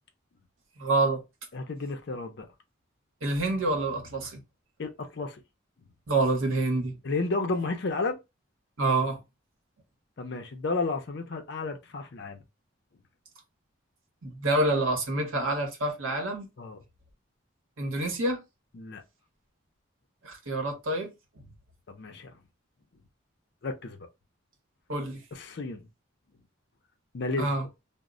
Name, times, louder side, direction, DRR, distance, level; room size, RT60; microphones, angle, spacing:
voice 1, 0.8-1.2 3.2-4.4 6.1-7.0 8.8-9.2 14.2-16.5 17.8-18.4 20.2-21.1 24.9-25.2 27.4-27.7, right 2 dB, 85° right, 0.9 m, -27 dB
voice 2, 1.5-2.5 4.8-5.4 7.0-8.2 10.2-12.4 16.6-16.8 18.7-19.0 21.9-22.3 23.6-24.0 25.3-25.9 27.1-27.5, left 3 dB, 55° left, 0.5 m, -32 dB
2.0 x 2.0 x 3.6 m
head